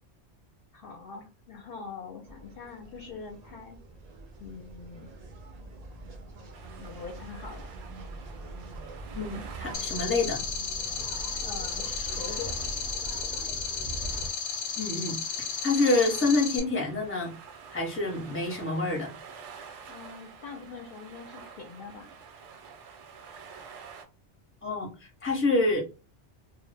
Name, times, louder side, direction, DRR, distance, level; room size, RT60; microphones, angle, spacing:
voice 1, 0.7-3.8 4.4-5.1 6.8-7.7 11.4-12.7 19.9-22.1, left 5 dB, 60° left, 1 dB, 0.7 m, -43 dB
sound 1, 2.2-14.3, right 2 dB, 55° right, 0.4 m, -42 dB
sound 2, 6.5-24.0, right 6 dB, 90° right, 0.9 m, -49 dB
voice 2, 9.1-10.4 14.8-15.2 15.6-17.3 17.7-19.1 24.6-25.8, left 2 dB, 15° left, 0 dB, 0.6 m, -27 dB
sound 3, 9.7-16.6, left 6 dB, 90° left, 0.9 m, -34 dB
2.0 x 2.0 x 3.2 m, 0.32 s
omnidirectional pair, 1.2 m